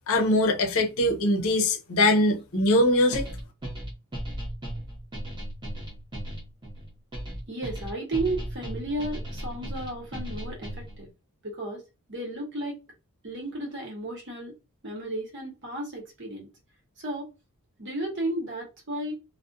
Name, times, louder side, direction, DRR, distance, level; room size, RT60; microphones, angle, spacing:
voice 1, 0.1-3.3, left 1 dB, 65° left, 0.6 m, -22 dB
sound 1, 3.1-11.0, right 1 dB, 20° right, 0.8 m, -36 dB
voice 2, 7.5-11.1 11.4-11.8 12.1-12.8 13.2-14.6 14.8-16.5 17.0-17.3 17.8-19.1, right 1 dB, 55° right, 1.0 m, -33 dB
2.4 x 2.1 x 2.5 m
head